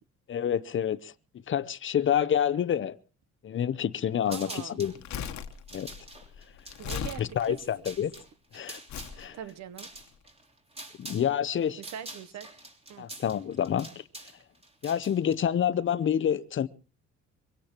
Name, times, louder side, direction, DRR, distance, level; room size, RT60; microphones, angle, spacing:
voice 1, 0.3-1.1 1.5-2.9 3.4-4.9 5.7-5.9 7.2-8.1 8.5-8.8 9.2-9.3 11.0-11.8 13.0-13.9 14.8-16.7, left 9 dB, 45° left, 0.7 m, -28 dB
voice 2, 4.2-4.8 6.8-7.6 9.3-9.9 11.8-12.5 12.9-13.1, right 9 dB, 65° right, 1.0 m, -41 dB
sound 1, 4.3-5.0 5.5-11.3 11.6-15.3, right 1 dB, 20° right, 3.3 m, -45 dB
Crumpling crinkling, 4.9-8.2 8.9-9.2 10.0-10.1, left 8 dB, 70° left, 1.3 m, -38 dB
23.5 x 17.0 x 3.0 m
cardioid pair, 95°, 30 cm